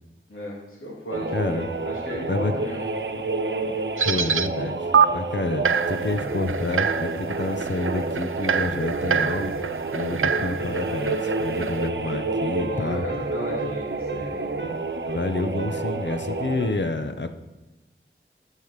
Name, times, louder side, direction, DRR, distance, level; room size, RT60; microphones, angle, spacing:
voice 1, 0.3-2.9 10.3-11.0 12.0-12.3 12.6-14.6, left 1 dB, 80° left, -5 dB, 2.8 m, -36 dB
sound 1, 1.1-16.8, right 3 dB, 60° right, 1.0 m, -29 dB
voice 2, 1.3-1.7 2.3-2.5 4.0-4.9 5.1-9.5 9.9-13.0 15.1-17.3, left 3 dB, 60° left, 8 dB, 0.9 m, -28 dB
sound 2, 4.0-4.5 4.9-5.0 5.6-11.9, right 7 dB, 80° right, 0.5 m, -26 dB
11.5 x 7.6 x 6.7 m, 1.1 s
wide cardioid pair, 50°, 21 cm